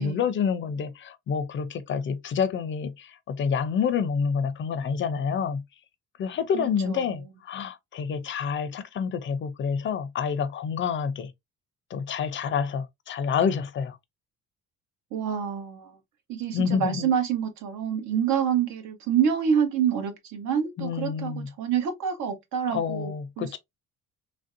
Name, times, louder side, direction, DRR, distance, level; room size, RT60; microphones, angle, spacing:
voice 1, 0.0-5.6 6.2-11.3 11.9-14.0 16.5-17.1 20.8-21.5 22.7-23.6, left 6 dB, 40° left, 0.4 m, -28 dB
voice 2, 6.5-7.3 15.1-16.0 16.3-23.6, right 8 dB, 85° right, 1.0 m, -27 dB
3.1 x 2.6 x 2.4 m
cardioid pair, 165°, 30 cm